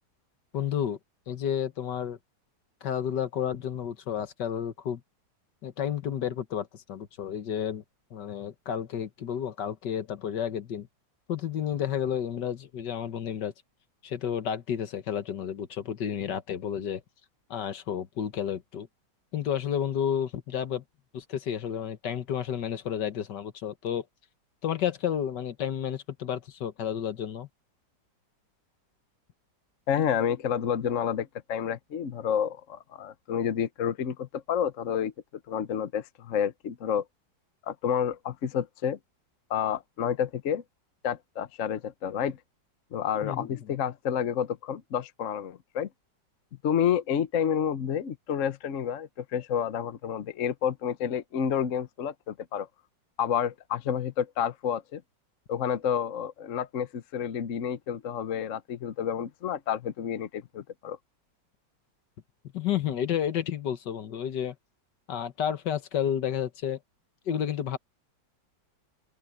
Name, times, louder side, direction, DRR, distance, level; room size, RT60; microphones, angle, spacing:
voice 1, 0.5-1.0 1.3-2.2 2.8-5.0 5.6-7.8 8.1-10.9 11.3-13.5 14.0-17.0 17.5-18.9 19.3-20.8 21.1-24.1 24.6-27.5 43.2-43.5 62.5-64.6 65.1-66.8 67.3-67.8, left 9 dB, 70° left, 1.8 m, -31 dB
voice 2, 29.9-35.1 35.5-37.0 37.7-39.0 39.5-40.6 41.0-42.4 42.9-45.9 46.6-52.7 53.2-55.0 55.5-61.0, left 8 dB, 50° left, 1.1 m, -29 dB
omnidirectional pair, 2.0 m